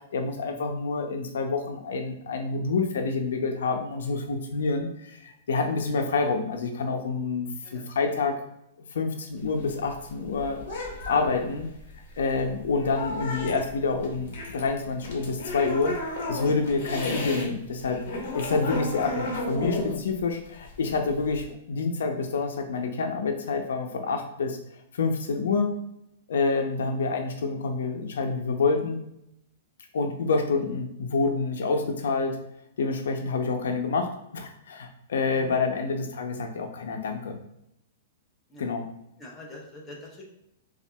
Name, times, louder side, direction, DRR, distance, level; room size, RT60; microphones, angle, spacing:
voice 1, 0.0-8.4 8.9-10.6 11.1-11.7 12.2-18.0 18.3-24.6 24.9-25.7 26.3-29.0 29.9-32.4 32.8-37.4 38.6-38.9, left 4 dB, 85° left, 4 dB, 0.6 m, -27 dB
sound 1, 9.4-17.5 17.8-21.5, left 2 dB, 45° left, 1.0 m, -34 dB
voice 2, 39.2-40.2, left 1 dB, 5° left, -4 dB, 0.5 m, -44 dB
5.6 x 2.4 x 2.2 m, 0.80 s
supercardioid pair, 180°, 0 cm